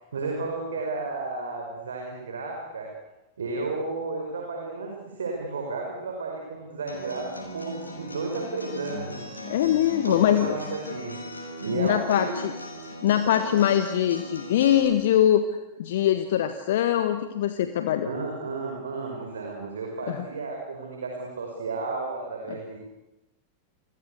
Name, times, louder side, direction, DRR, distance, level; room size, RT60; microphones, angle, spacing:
voice 1, 0.1-2.9 3.4-9.3 10.0-11.2 11.6-12.3 18.0-22.8, right 3 dB, 70° right, 1 dB, 5.6 m, -32 dB
Acoustic guitar, 6.9-14.9, equal, 80° left, 7.1 m, -39 dB
voice 2, 9.5-10.6 11.7-12.5 13.0-15.4 15.8-18.1 20.1-20.2, left 11 dB, 55° left, 9 dB, 1.5 m, -22 dB
30.0 x 23.5 x 8.3 m, 0.99 s
figure-of-eight pair, 90°, 0 cm